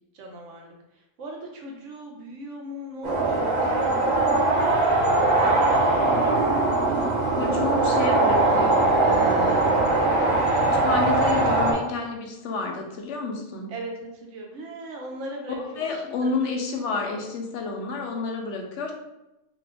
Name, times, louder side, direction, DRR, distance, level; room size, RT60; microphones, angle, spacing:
voice 1, 0.1-0.7 1.2-7.1 13.7-13.9 14.2-16.3, right 1 dB, 70° right, 0 dB, 1.0 m, -39 dB
sound 1, 3.0-11.7, right 2 dB, 90° right, 1.2 m, -21 dB
voice 2, 7.4-9.9 10.8-13.7 15.5-18.9, left 3 dB, 70° left, 2 dB, 0.9 m, -30 dB
2.9 x 2.4 x 3.3 m, 0.94 s
omnidirectional pair, 1.3 m